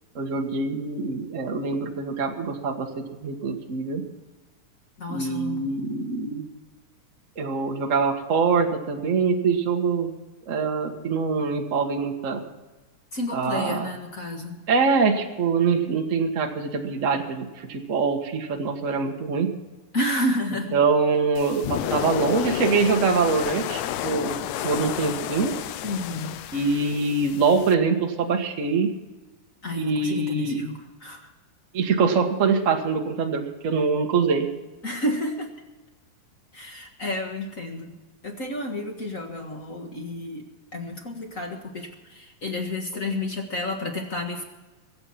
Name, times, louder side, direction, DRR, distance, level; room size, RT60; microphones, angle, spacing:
voice 1, 0.1-4.0 5.1-6.5 7.4-10.1 10.5-12.4 13.3-13.9 14.7-19.5 20.7-24.4 24.6-25.5 26.5-28.9 29.8-30.6 31.7-34.5, right 4 dB, 60° right, 3 dB, 0.8 m, -24 dB
voice 2, 5.0-5.8 13.1-14.6 19.9-20.8 25.8-26.4 29.6-31.3 34.8-35.5 36.5-38.0 38.2-40.4 40.7-44.4, left 1 dB, 45° left, 3 dB, 1.0 m, -30 dB
sound 1, 21.4-27.8, left 12 dB, 80° left, 1.8 m, -31 dB
23.5 x 8.0 x 5.8 m, 1.2 s
omnidirectional pair, 3.9 m